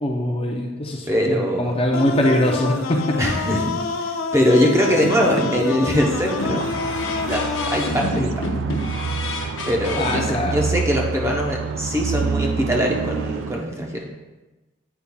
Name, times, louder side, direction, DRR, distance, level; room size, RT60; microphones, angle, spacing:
voice 1, 0.0-3.2 9.9-10.7, left 1 dB, 25° left, 1 dB, 0.6 m, -22 dB
voice 2, 1.1-1.8 3.2-3.8 4.3-6.6 7.0-7.4 7.7-8.5 9.7-14.1, equal, 15° right, -1 dB, 0.6 m, -22 dB
sound 1, 1.9-7.9, left 4 dB, 85° left, 0.5 m, -27 dB
sound 2, 4.9-5.8 6.4-10.2, left 1 dB, 65° left, 0.8 m, -28 dB
sound 3, 5.9-13.6, right 5 dB, 65° right, 0.3 m, -28 dB
8.5 x 5.4 x 2.2 m, 1.1 s
head